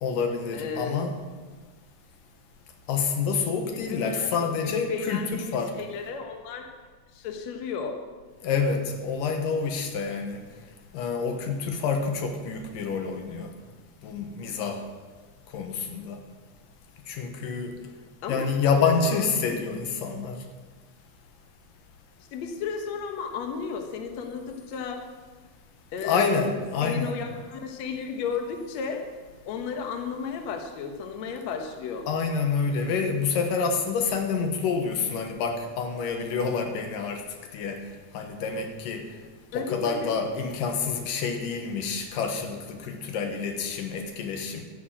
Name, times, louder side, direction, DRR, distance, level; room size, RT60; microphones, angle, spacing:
voice 1, 0.0-1.2 2.9-5.7 8.4-10.4 10.9-13.5 14.0-14.8 15.5-16.2 17.1-17.8 18.3-20.4 26.0-27.2 32.1-37.2 37.5-37.8 38.1-39.1 39.5-44.6, left 5 dB, 90° left, 4 dB, 3.0 m, -28 dB
voice 2, 0.5-1.0 3.7-6.7 7.1-8.0 18.2-18.5 18.8-19.6 22.3-25.0 25.9-29.0 29.5-32.1 39.5-40.2, left 5 dB, 65° left, 5 dB, 2.3 m, -34 dB
12.5 x 10.5 x 7.6 m, 1.4 s
omnidirectional pair, 3.7 m